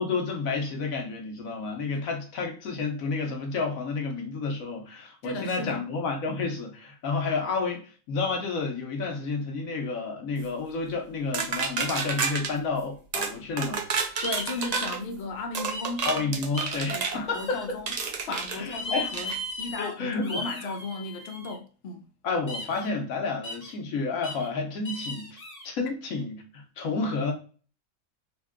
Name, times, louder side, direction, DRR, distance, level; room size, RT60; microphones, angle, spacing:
voice 1, 0.0-13.8 16.0-17.6 18.5-19.1 19.8-20.7 22.2-25.4 25.6-27.3, left 4 dB, 85° left, 1.3 m, -30 dB
voice 2, 5.2-5.8 14.0-16.1 16.9-17.9 18.2-22.1 26.8-26.9, left 3 dB, 60° left, 0.8 m, -35 dB
sound 1, 11.3-12.5 13.1-13.3 13.6-15.0 15.5-17.2 17.9-18.6 19.1-19.4, right 5 dB, 85° right, 0.3 m, -30 dB
sound 2, 14.2-14.7 15.7-16.1 16.5-16.8 17.3-18.1 18.7-19.9 20.2-21.5 22.5-22.9 23.4-23.7 24.2-24.5 24.8-25.7, left 1 dB, 45° left, 1.5 m, -37 dB
3.6 x 2.2 x 3.5 m
omnidirectional pair, 1.4 m